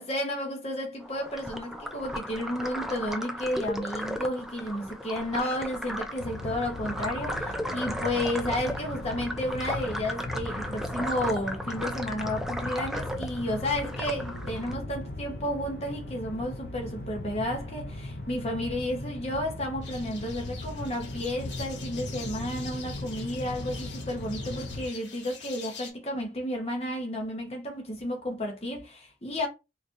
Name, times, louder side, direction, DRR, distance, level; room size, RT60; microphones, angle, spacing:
voice 1, 0.0-29.5, left 1 dB, 35° left, 1.0 m, -32 dB
sound 1, 1.0-14.7, equal, ahead, 0.3 m, -36 dB
sound 2, 6.2-24.9, left 1 dB, 65° left, 0.6 m, -38 dB
sound 3, 19.8-25.9, left 6 dB, 85° left, 1.1 m, -45 dB
4.3 x 2.6 x 2.5 m
head